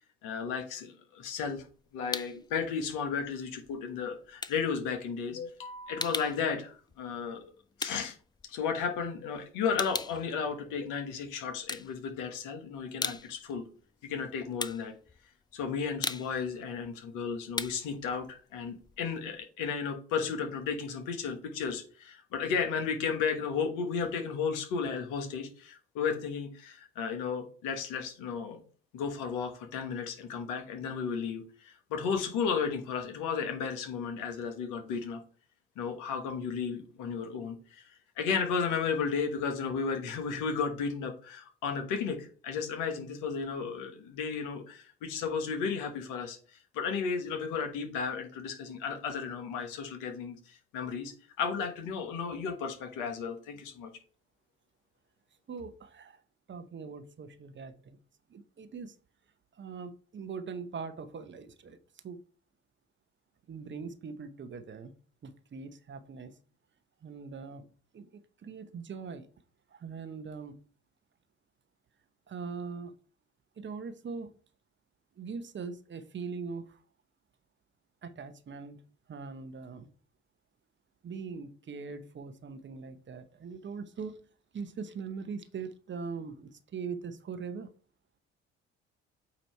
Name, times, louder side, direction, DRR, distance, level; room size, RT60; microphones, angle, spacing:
voice 1, 0.2-1.6 1.9-7.5 7.8-8.2 8.4-13.6 14.0-14.9 15.5-28.6 28.9-35.2 35.8-53.9, left 6 dB, 70° left, 6 dB, 1.3 m, -34 dB
sound 1, 1.2-2.5 2.8-9.1 9.4-11.1 11.5-12.4 12.7-19.4, left 4 dB, 15° left, 0.5 m, -39 dB
voice 2, 55.5-56.2 56.5-58.0 58.3-59.0 59.5-61.8 62.0-62.2 63.5-64.9 65.2-66.3 67.0-69.3 69.7-70.6 72.3-72.9 73.6-74.3 75.2-76.8 78.0-78.8 79.1-79.9 81.0-84.2 84.5-87.7, right 5 dB, 35° right, 10 dB, 0.9 m, -41 dB
8.5 x 2.9 x 4.5 m, 0.41 s
hypercardioid pair, 55°, 32 cm